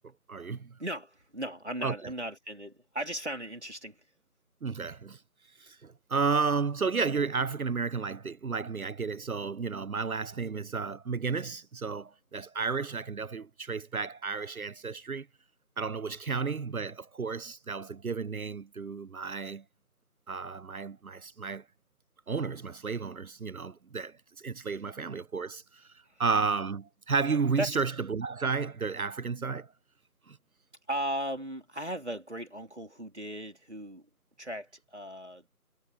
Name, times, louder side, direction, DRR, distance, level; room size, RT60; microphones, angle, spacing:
voice 1, 0.3-0.7 1.8-1.9 4.6-5.2 5.6-15.3 15.8-19.6 20.3-21.6 22.3-25.8 26.2-29.7 30.3-30.4, right 5 dB, 65° right, 0.5 m, -32 dB
voice 2, 0.8-4.0 26.1-26.2 27.6-27.8 30.9-34.1 34.4-35.4, right 1 dB, 45° right, 3.7 m, -37 dB
figure-of-eight pair, 175°, 46 cm